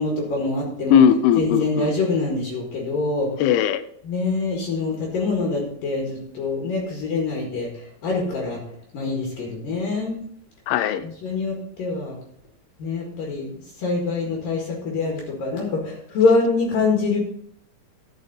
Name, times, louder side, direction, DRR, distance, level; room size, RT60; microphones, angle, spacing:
voice 1, 0.0-1.0 1.4-3.3 4.0-8.6 8.9-10.2 11.0-12.2 12.8-13.5 13.8-17.2, left 3 dB, 65° left, -1 dB, 3.3 m, -25 dB
voice 2, 0.9-1.9 3.4-3.8 10.7-11.1, left 8 dB, 85° left, 12 dB, 2.7 m, -18 dB
12.5 x 6.8 x 4.1 m, 0.65 s
omnidirectional pair, 4.5 m